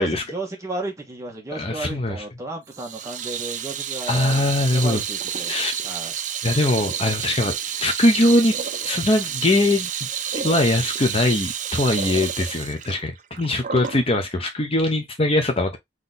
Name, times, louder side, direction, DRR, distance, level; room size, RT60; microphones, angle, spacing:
voice 1, 0.0-5.5 5.8-6.1, right 2 dB, 15° right, 1.4 m, -33 dB
voice 2, 1.5-2.2 4.1-5.0 5.5-5.7 6.4-8.5 8.8-10.1 10.3-15.8, left 1 dB, 30° left, 0.8 m, -21 dB
Water tap faucet / Sink (filling or washing), 2.7-14.0, right 8 dB, 45° right, 0.5 m, -30 dB
4.1 x 3.1 x 3.9 m
head